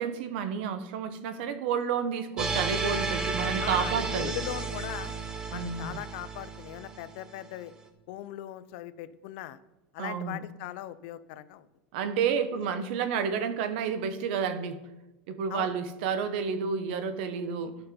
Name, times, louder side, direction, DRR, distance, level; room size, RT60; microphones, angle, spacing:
voice 1, 0.0-4.3 5.5-6.0 10.0-10.4 11.9-14.8 15.3-17.8, right 6 dB, 65° right, 11 dB, 1.0 m, -30 dB
sound 1, 2.4-7.5, right 4 dB, 15° right, 0.9 m, -33 dB
voice 2, 3.6-5.1 5.5-7.7 8.1-9.6 9.9-11.7 12.5-12.7 15.5-15.7, left 14 dB, 60° left, 15 dB, 0.6 m, -39 dB
12.0 x 5.6 x 5.2 m, 1.0 s
supercardioid pair, 150°, 6 cm